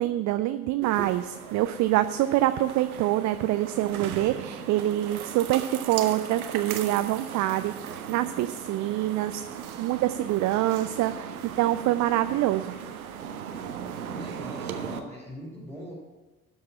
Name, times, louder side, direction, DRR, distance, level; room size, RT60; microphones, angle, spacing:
voice 1, 0.0-12.8, right 14 dB, 45° right, 10 dB, 0.5 m, -26 dB
sound 1, 0.8-15.0, right 8 dB, 80° right, 0.8 m, -38 dB
voice 2, 13.7-15.9, equal, 5° left, -6 dB, 3.2 m, -42 dB
12.5 x 4.8 x 8.6 m, 1.2 s
figure-of-eight pair, 50°, 42 cm